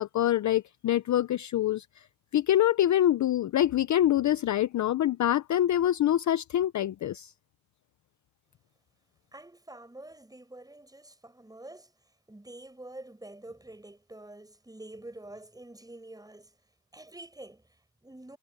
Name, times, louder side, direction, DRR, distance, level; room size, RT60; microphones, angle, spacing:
voice 1, 0.0-1.8 2.3-7.3, left 12 dB, 35° left, 0.7 m, -25 dB
voice 2, 9.3-11.9 12.3-16.6 16.9-18.4, right 1 dB, 10° right, 7.3 m, -47 dB
supercardioid pair, 100°, 48 cm